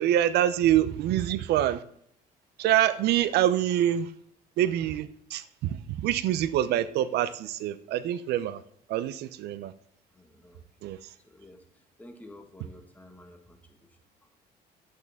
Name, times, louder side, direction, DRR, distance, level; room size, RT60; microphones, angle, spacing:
voice 1, 0.0-1.8 2.6-4.1 4.6-8.6 8.9-9.7 10.8-11.1, right 12 dB, 75° right, 0.5 m, -26 dB
voice 2, 10.1-10.6 11.2-14.3, left 1 dB, 10° left, 1.5 m, -51 dB
10.5 x 8.3 x 3.6 m
cardioid pair, 110°, 17 cm